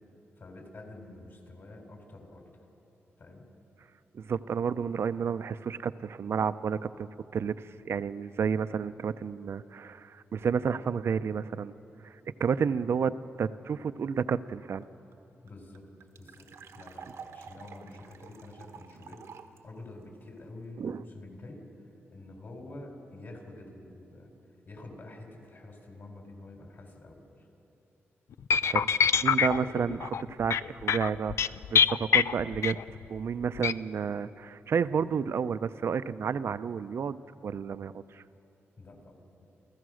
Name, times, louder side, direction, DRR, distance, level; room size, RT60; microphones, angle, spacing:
voice 1, 0.4-2.4 3.2-3.4 15.4-15.9 16.2-21.6 22.1-24.3 24.7-27.5 38.8-39.5, left 2 dB, 50° left, 2 dB, 4.0 m, -48 dB
voice 2, 4.1-11.7 12.0-14.9 20.8-21.0 28.6-28.9 29.2-30.6 30.8-32.8 33.1-38.2, right 6 dB, 60° right, 14 dB, 0.6 m, -31 dB
sound 1, 14.8-14.9 15.1-15.2 15.5-19.6, right 6 dB, 85° right, 1.2 m, -49 dB
sound 2, 28.5-33.1 33.6-33.7, left 7 dB, 75° left, 0.4 m, -25 dB
29.0 x 15.0 x 6.4 m, 2.8 s
wide cardioid pair, 115°, 5 cm